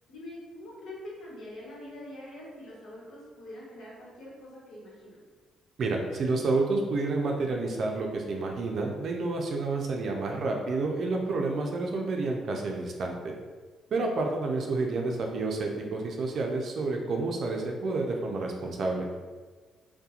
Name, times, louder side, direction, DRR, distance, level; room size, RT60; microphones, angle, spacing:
voice 1, 0.1-5.2 14.1-14.3, left 1 dB, 75° left, -6 dB, 1.0 m, -44 dB
voice 2, 5.8-13.3 13.9-19.1, right 3 dB, 60° right, 1 dB, 0.4 m, -29 dB
2.8 x 2.2 x 2.4 m, 1.4 s
cardioid pair, 90°, 0 cm